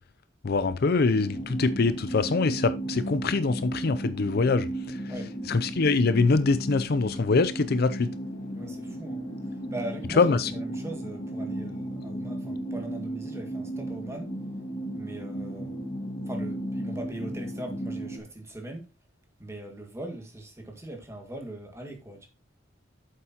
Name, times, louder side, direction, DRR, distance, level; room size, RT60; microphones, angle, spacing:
voice 1, 0.4-5.0 5.5-8.1 10.2-10.5, left 4 dB, 55° left, 0.5 m, -24 dB
sound 1, 1.1-18.2, right 1 dB, 25° left, 1.6 m, -35 dB
voice 2, 8.5-14.3 14.9-15.8 16.3-18.9 19.4-22.3, right 1 dB, 15° right, 1.9 m, -40 dB
8.4 x 7.5 x 2.9 m
head